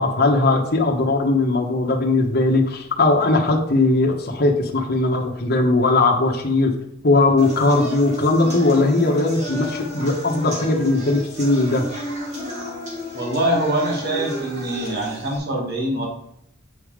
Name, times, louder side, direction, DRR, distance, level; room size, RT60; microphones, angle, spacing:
voice 1, 0.0-6.7 7.0-11.8, left 2 dB, 55° left, 1 dB, 1.2 m, -19 dB
sound 1, 7.4-15.4, equal, 40° right, 2.7 m, -31 dB
voice 2, 13.1-16.1, right 1 dB, 60° right, -1 dB, 2.2 m, -24 dB
8.4 x 5.2 x 5.0 m, 0.76 s
head